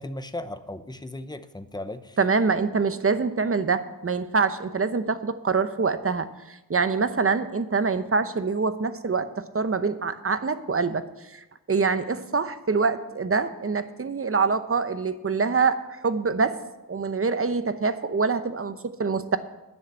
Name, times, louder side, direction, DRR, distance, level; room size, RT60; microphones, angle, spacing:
voice 1, 0.0-2.2, left 1 dB, 10° left, 10 dB, 0.8 m, -36 dB
voice 2, 2.2-11.0 11.3-11.4 11.7-16.6 16.9-19.4, right 4 dB, 35° right, 11 dB, 0.8 m, -25 dB
11.0 x 6.5 x 8.8 m, 0.97 s
wide cardioid pair, 85°, 37 cm